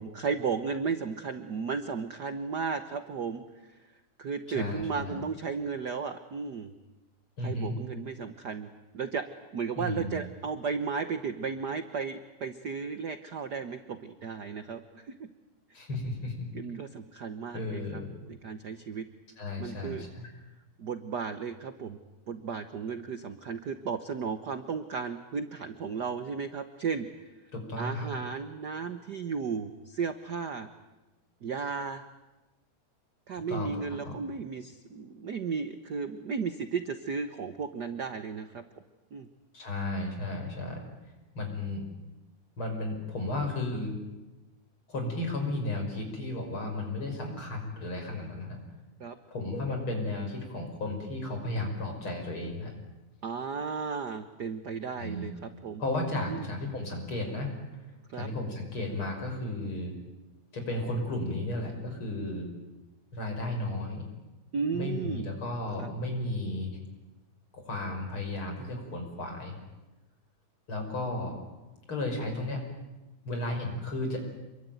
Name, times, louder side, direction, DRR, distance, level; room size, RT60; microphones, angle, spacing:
voice 1, 0.0-3.4 3.7-3.8 4.2-6.7 7.4-9.3 9.5-15.3 16.5-18.0 18.3-19.1 19.6-20.0 20.8-22.0 22.3-27.1 27.8-30.7 31.4-32.0 33.3-38.6 39.1-39.3 49.0-49.2 53.2-55.8 56.3-56.5 58.1-58.3 64.5-65.3 65.8-65.9, right 5 dB, 65° right, 9 dB, 1.0 m, -34 dB
voice 2, 4.5-5.2 7.4-7.8 9.8-10.2 15.7-16.3 17.5-18.1 19.4-20.3 27.5-28.1 33.5-34.2 39.5-40.8 41.3-41.8 42.6-44.0 44.9-48.6 49.3-52.7 55.0-55.3 55.8-57.8 58.1-60.0 60.5-62.5 63.1-64.1 64.7-66.8 67.5-69.6 70.7-71.4 71.9-72.6 73.2-74.2, left 2 dB, 40° left, 3 dB, 6.6 m, -34 dB
28.0 x 23.0 x 9.3 m, 1.1 s
omnidirectional pair, 3.5 m